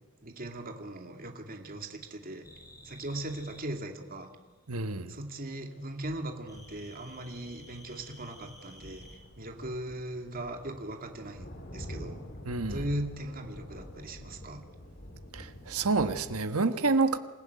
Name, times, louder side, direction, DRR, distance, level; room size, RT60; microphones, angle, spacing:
voice 1, 0.2-2.5 2.8-4.3 5.1-9.1 9.4-11.5 11.7-12.2 12.7-14.6, right 1 dB, 45° right, 4 dB, 2.3 m, -39 dB
sound 1, 2.4-3.6 6.5-9.2, left 1 dB, 15° left, 5.7 m, -52 dB
voice 2, 4.7-5.1 12.5-12.8 15.3-17.2, right 3 dB, 85° right, 9 dB, 1.3 m, -28 dB
sound 2, 6.0-6.8 7.5-8.5 8.8-16.4, equal, 45° left, 3.0 m, -46 dB
27.5 x 16.0 x 9.4 m, 1.3 s
head